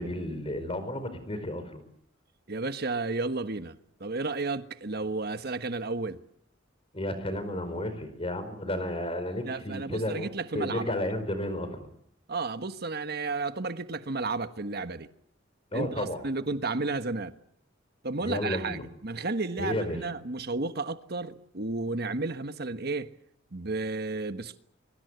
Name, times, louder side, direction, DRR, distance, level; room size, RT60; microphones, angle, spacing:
voice 1, 0.0-1.8 6.9-11.9 15.7-16.2 18.2-18.8 19.6-20.0, left 1 dB, 30° left, 4.8 m, -32 dB
voice 2, 2.5-6.2 9.4-10.8 12.3-15.1 15.7-17.3 18.0-23.1 23.5-24.6, right 3 dB, 55° right, 1.3 m, -32 dB
23.5 x 23.5 x 8.1 m
head